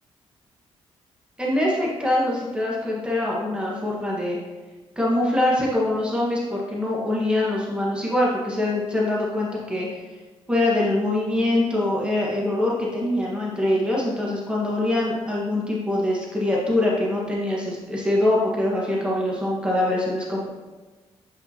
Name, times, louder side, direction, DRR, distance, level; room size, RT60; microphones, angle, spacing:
voice 1, 1.4-4.4 5.0-9.9 10.5-20.5, left 1 dB, 10° right, -4 dB, 1.5 m, -23 dB
7.7 x 5.1 x 2.9 m, 1.3 s
cardioid pair, 75°, 12 cm